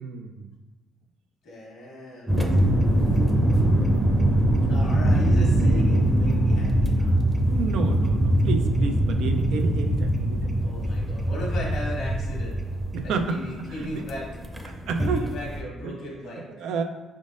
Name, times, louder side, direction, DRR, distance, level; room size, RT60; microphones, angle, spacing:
voice 1, 0.0-0.5 7.5-10.6 12.9-13.4 13.7-14.0 14.7-15.3 16.5-16.8, right 4 dB, 75° right, 5 dB, 0.4 m, -30 dB
voice 2, 1.4-4.0 4.6-7.2 10.6-12.6 13.0-14.3 14.5-16.7, left 1 dB, 75° left, -3 dB, 1.4 m, -37 dB
sound 1, 2.3-15.6, right 1 dB, 15° right, 0.7 m, -22 dB
5.2 x 3.6 x 2.5 m, 1.2 s
supercardioid pair, 55°, 0 cm